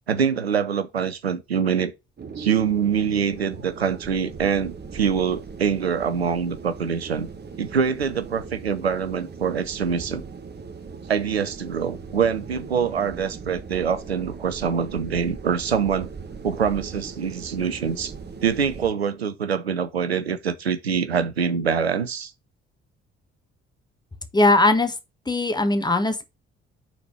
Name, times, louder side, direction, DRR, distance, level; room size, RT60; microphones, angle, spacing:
voice 1, 0.1-1.9 2.4-7.3 7.6-10.2 11.1-16.1 16.4-18.1 18.4-22.3, right 7 dB, 85° right, 0.5 m, -24 dB
sound 1, 2.2-18.9, right 5 dB, 35° right, 1.2 m, -39 dB
voice 2, 24.3-24.9 25.3-26.2, left 2 dB, 15° left, 1.3 m, -19 dB
5.8 x 4.1 x 6.0 m
figure-of-eight pair, 45°, 30 cm